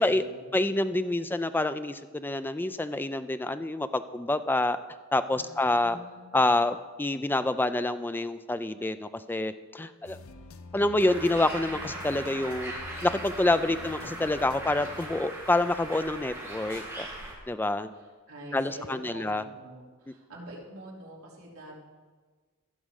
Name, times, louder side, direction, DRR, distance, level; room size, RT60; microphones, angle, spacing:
voice 1, 0.0-0.5 5.3-6.4 13.6-14.1 17.9-21.8, right 1 dB, 65° right, -4 dB, 2.9 m, -46 dB
voice 2, 0.5-4.8 5.1-6.0 6.3-10.2 10.7-12.7 13.0-17.1 17.5-17.9 18.5-19.4, left 2 dB, 10° left, 11 dB, 0.3 m, -27 dB
sound 1, 10.0-15.2, left 3 dB, 65° left, 0.6 m, -47 dB
Bird, 11.0-17.3, right 1 dB, 10° right, 2.3 m, -39 dB
14.5 x 5.2 x 6.4 m, 1.4 s
head